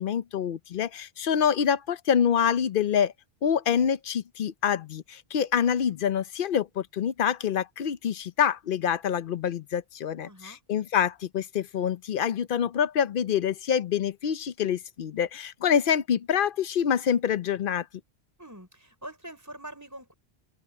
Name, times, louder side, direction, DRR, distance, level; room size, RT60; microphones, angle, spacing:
voice 1, 0.0-3.1 3.4-17.9, left 8 dB, 60° left, 0.8 m, -26 dB
voice 2, 10.2-10.6 18.4-20.1, right 1 dB, 15° right, 5.5 m, -44 dB
omnidirectional pair, 1.1 m